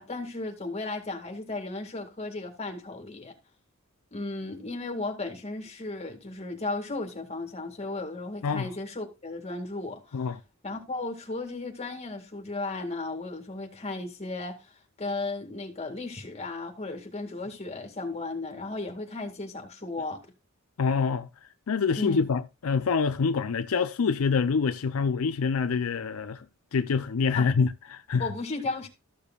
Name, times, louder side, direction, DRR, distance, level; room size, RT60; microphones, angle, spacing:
voice 1, 0.0-3.3 4.1-10.2 10.6-14.6 15.0-20.2 22.0-22.3 27.3-27.5 28.2-28.9, left 2 dB, 30° left, 2.1 m, -35 dB
voice 2, 20.8-21.3 21.7-26.4 26.7-28.3, left 5 dB, 75° left, 0.5 m, -26 dB
14.0 x 6.8 x 2.4 m
head